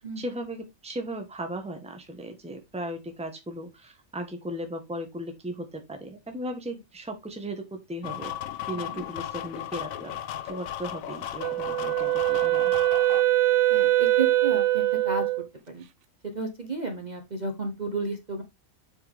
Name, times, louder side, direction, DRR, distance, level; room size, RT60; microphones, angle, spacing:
voice 1, 0.2-8.3 8.7-10.1 10.4-12.7, right 1 dB, 5° right, 1.2 m, -36 dB
sound 1, 8.0-13.2, left 11 dB, 85° left, 1.1 m, -36 dB
Wind instrument woodwind instrument, 11.4-15.5, right 16 dB, 65° right, 1.0 m, -23 dB
voice 2, 13.7-15.2 15.7-15.8 16.3-18.4, right 3 dB, 35° right, 1.2 m, -32 dB
7.4 x 4.8 x 3.4 m
omnidirectional pair, 1.4 m